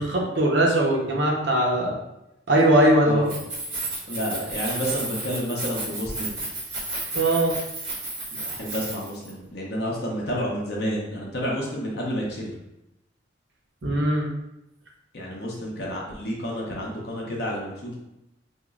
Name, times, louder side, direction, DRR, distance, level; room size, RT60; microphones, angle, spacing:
voice 1, 0.0-2.0 2.5-3.2 7.1-7.6 13.8-14.3, right 1 dB, 65° right, 0 dB, 0.7 m, -20 dB
voice 2, 3.0-3.4 4.1-6.4 8.3-12.5 13.8-13.9 15.1-17.9, equal, 55° left, -3 dB, 0.7 m, -30 dB
Keys jangling, 3.2-9.3, right 2 dB, 85° right, 1.3 m, -32 dB
3.5 x 2.0 x 3.5 m, 0.88 s
head